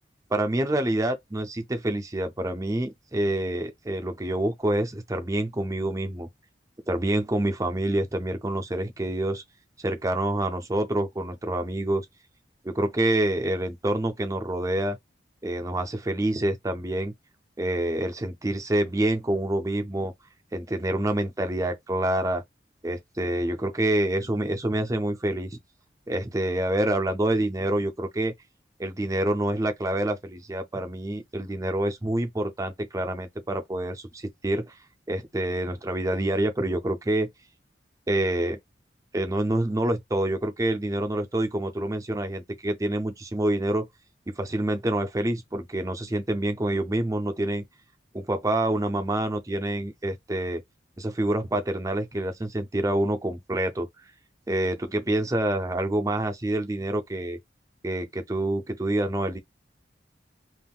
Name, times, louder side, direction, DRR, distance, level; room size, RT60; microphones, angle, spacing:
voice 1, 0.3-6.3 6.9-9.4 9.8-12.1 12.6-15.0 15.4-17.1 17.6-20.1 20.5-22.4 22.8-25.6 26.1-28.3 28.8-34.7 35.1-37.3 38.1-38.6 39.1-43.9 44.3-47.6 48.1-50.6 51.0-53.9 54.5-57.4 57.8-59.4, right 1 dB, 20° right, 0.5 m, -27 dB
3.6 x 2.5 x 2.3 m
head